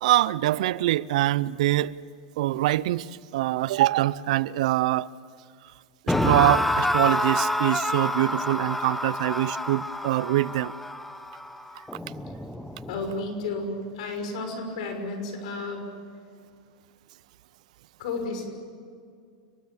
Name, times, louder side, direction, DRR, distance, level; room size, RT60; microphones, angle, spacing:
voice 1, 0.0-1.9 2.4-5.1 6.1-10.7, right 15 dB, 70° right, 0.6 m, -24 dB
sound 1, 6.1-13.2, left 1 dB, 5° left, 1.0 m, -28 dB
voice 2, 12.9-15.9 18.0-18.5, left 3 dB, 70° left, 6.4 m, -32 dB
30.0 x 19.5 x 7.2 m
supercardioid pair, 145°, 4 cm